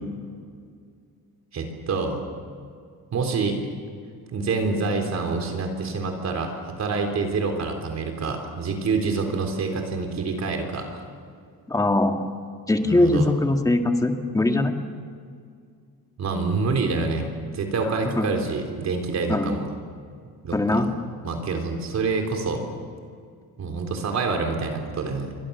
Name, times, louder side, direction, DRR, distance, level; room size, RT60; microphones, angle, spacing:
voice 1, 1.5-2.2 3.1-3.6 4.3-11.0 12.8-13.3 16.2-19.7 20.4-20.9 21.2-22.6 23.6-25.3, right 4 dB, 45° right, 4 dB, 3.8 m, -27 dB
voice 2, 11.7-12.2 12.7-14.8 18.2-18.3 19.3-19.6 20.5-20.9, left 2 dB, 10° left, 4 dB, 1.8 m, -21 dB
29.0 x 24.5 x 7.1 m, 2.2 s
cardioid pair, 170°, 37 cm